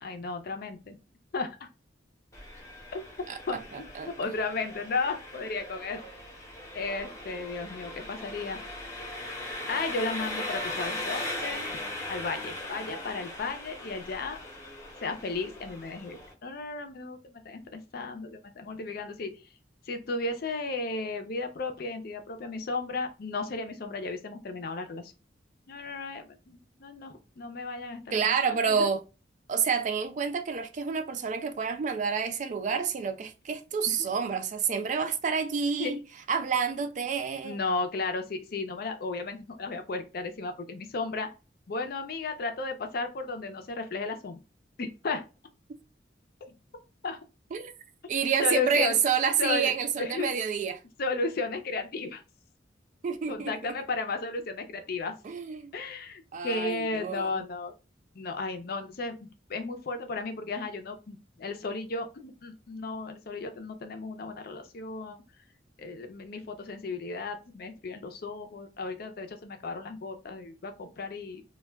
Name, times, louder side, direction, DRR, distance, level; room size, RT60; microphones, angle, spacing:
voice 1, 0.0-1.0 1.3-1.7 2.9-3.0 3.5-3.6 4.0-6.0 6.7-8.6 9.7-11.6 12.1-14.4 15.0-19.4 19.9-25.1 25.7-28.9 33.9-34.0 35.8-36.0 37.4-41.3 41.7-44.4 44.8-45.2 47.0-47.2 48.0-48.1 48.4-49.0 49.4-50.3 51.0-52.2 53.3-55.1 55.7-57.7 58.1-59.2 59.5-65.2 65.8-71.4, left 3 dB, 60° left, 0.5 m, -34 dB
Engine, 2.3-16.3, left 1 dB, 20° left, 0.7 m, -39 dB
voice 2, 3.3-4.3 28.1-29.0 29.5-36.0 36.3-37.6 47.5-47.7 48.1-50.8 53.0-53.8 55.2-55.7 56.3-57.4, right 6 dB, 45° right, 0.3 m, -29 dB
2.2 x 2.2 x 3.3 m
head